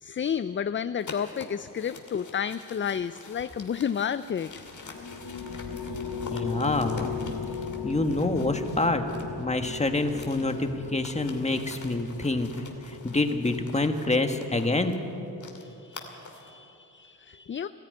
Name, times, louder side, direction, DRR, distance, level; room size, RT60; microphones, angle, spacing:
voice 1, 0.0-4.5 6.3-6.5 15.6-17.7, left 8 dB, 35° left, 13 dB, 0.4 m, -31 dB
sound 1, 1.0-9.4 9.7-16.5, left 3 dB, 55° left, 2.6 m, -46 dB
sound 2, 4.5-14.2, left 6 dB, 80° left, 1.6 m, -37 dB
voice 2, 6.3-7.1 7.8-9.0 9.4-12.5 12.8-15.0, left 2 dB, 20° left, 6 dB, 1.6 m, -27 dB
19.0 x 14.0 x 9.6 m, 2.8 s
cardioid pair, 85°, 36 cm